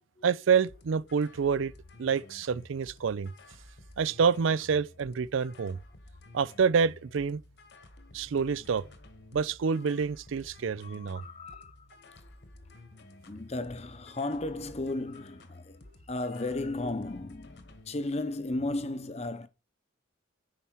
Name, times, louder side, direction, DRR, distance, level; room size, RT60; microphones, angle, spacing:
voice 1, 0.2-1.7 2.0-3.3 4.0-5.8 6.3-7.4 8.1-8.8 9.3-11.2, right 6 dB, 80° right, 0.4 m, -27 dB
sound 1, 0.7-18.0, left 2 dB, 55° left, 1.3 m, -53 dB
voice 2, 10.8-11.9 12.2-12.3 13.3-19.5, left 2 dB, 30° left, 0.8 m, -35 dB
9.0 x 5.6 x 4.5 m
head